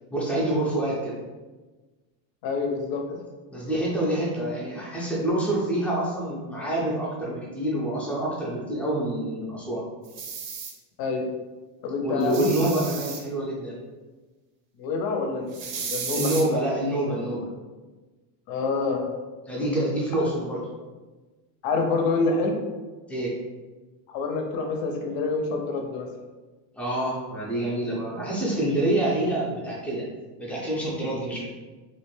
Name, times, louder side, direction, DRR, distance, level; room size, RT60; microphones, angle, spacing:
voice 1, 0.1-1.2 3.1-3.2 3.5-9.8 12.0-13.8 16.1-17.5 19.5-20.6 23.1-23.3 26.7-30.1 30.4-31.5, right 1 dB, 5° left, -6 dB, 0.4 m, -27 dB
voice 2, 2.4-3.1 11.0-11.3 11.8-12.7 14.8-16.3 18.5-19.0 20.2-20.3 21.6-22.6 24.1-26.1, left 3 dB, 50° left, 3 dB, 0.6 m, -27 dB
sound 1, 10.0-10.7 12.2-13.2 15.5-16.4, right 6 dB, 80° right, 0.7 m, -33 dB
2.5 x 2.2 x 3.1 m, 1.3 s
supercardioid pair, 130°, 48 cm